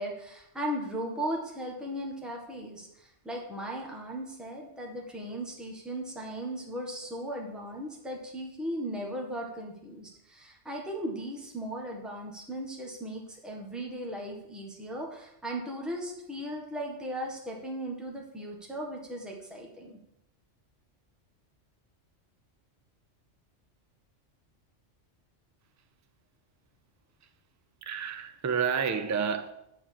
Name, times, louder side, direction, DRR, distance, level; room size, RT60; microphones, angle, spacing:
voice 1, 0.0-20.0, right 1 dB, ahead, 1.5 m, -37 dB
voice 2, 27.8-29.5, right 6 dB, 25° right, 0.4 m, -29 dB
9.1 x 4.5 x 7.5 m
omnidirectional pair, 1.3 m